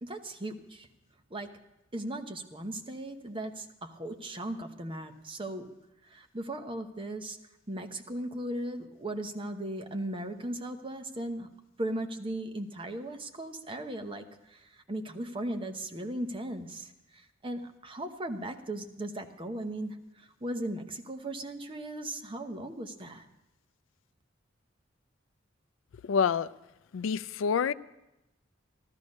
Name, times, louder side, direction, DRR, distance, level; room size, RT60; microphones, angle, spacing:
voice 1, 0.0-0.9 1.3-1.6 1.9-5.7 6.0-7.4 7.7-11.5 11.8-23.3, right 1 dB, 25° right, 0.9 m, -37 dB
voice 2, 26.0-26.5 26.9-27.7, left 6 dB, 90° left, 0.4 m, -27 dB
14.5 x 12.5 x 5.3 m
head